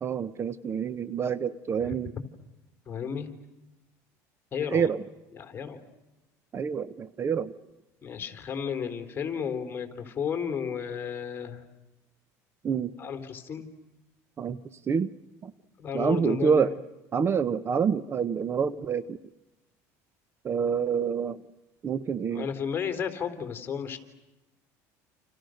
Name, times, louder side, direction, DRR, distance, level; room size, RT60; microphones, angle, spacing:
voice 1, 0.0-2.1 4.7-5.0 6.5-7.5 12.6-12.9 14.4-14.6 14.9-15.1 15.4-15.5 15.9-16.7 17.1-19.2 20.4-21.4 21.8-22.5, right 6 dB, 30° right, 16 dB, 0.9 m, -27 dB
voice 2, 2.9-3.3 4.5-4.9 5.3-5.8 8.0-11.7 13.0-13.7 15.8-16.7 22.3-24.0, left 7 dB, 25° left, 5 dB, 3.8 m, -33 dB
29.5 x 28.5 x 6.5 m, 1.0 s
supercardioid pair, 115°, 8 cm